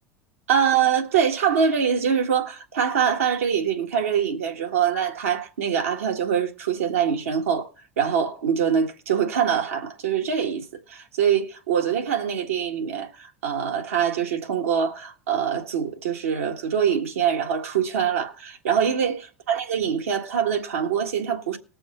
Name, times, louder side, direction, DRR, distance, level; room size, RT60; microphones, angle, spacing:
voice 1, 0.5-7.7 8.0-21.6, right 8 dB, 85° right, 1.7 m, -24 dB
19.5 x 6.9 x 4.3 m
hypercardioid pair, 90°, 7 cm